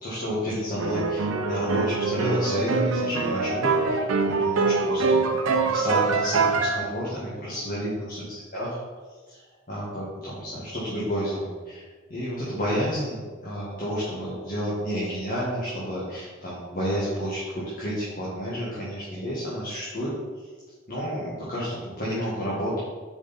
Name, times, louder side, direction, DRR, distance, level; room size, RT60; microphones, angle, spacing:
voice 1, 0.0-5.2 5.6-8.2 8.5-8.8 9.7-11.8 12.1-20.1 20.9-22.8, equal, 45° left, -8 dB, 1.7 m, -30 dB
sound 1, 0.8-6.8, right 4 dB, 90° right, 0.7 m, -24 dB
6.9 x 5.1 x 4.1 m, 1.4 s
head